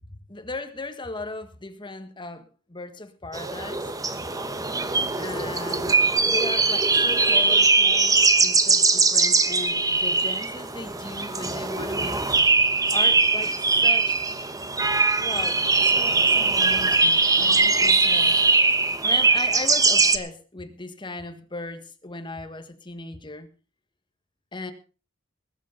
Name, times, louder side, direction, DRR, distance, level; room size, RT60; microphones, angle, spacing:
voice 1, 0.3-3.9 5.1-6.0 6.2-12.2 12.9-14.2 15.2-18.4 19.0-23.5 24.5-24.7, left 2 dB, 25° left, 1.5 m, -37 dB
sound 1, 3.3-20.2, right 3 dB, 20° right, 1.2 m, -21 dB
20.0 x 8.4 x 5.3 m
head